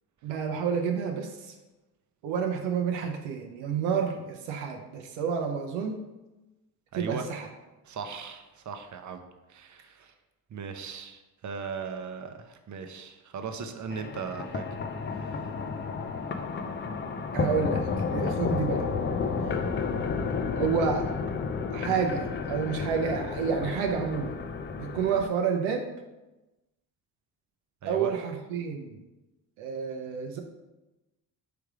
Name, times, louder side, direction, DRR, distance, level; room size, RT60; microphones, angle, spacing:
voice 1, 0.2-1.5 2.2-6.0 6.9-7.5 17.3-18.9 19.5-19.6 20.6-21.2 21.7-24.3 24.7-25.8 27.8-29.0 29.6-30.4, right 6 dB, 75° right, 3 dB, 0.6 m, -29 dB
voice 2, 6.9-7.3 7.8-9.2 9.5-10.1 10.5-14.6 15.1-15.3 27.8-28.1, right 5 dB, 40° right, 6 dB, 0.7 m, -38 dB
sound 1, 13.9-25.3, left 5 dB, 25° left, 0.3 m, -31 dB
3.4 x 3.3 x 4.8 m, 1.1 s
hypercardioid pair, 50°, 48 cm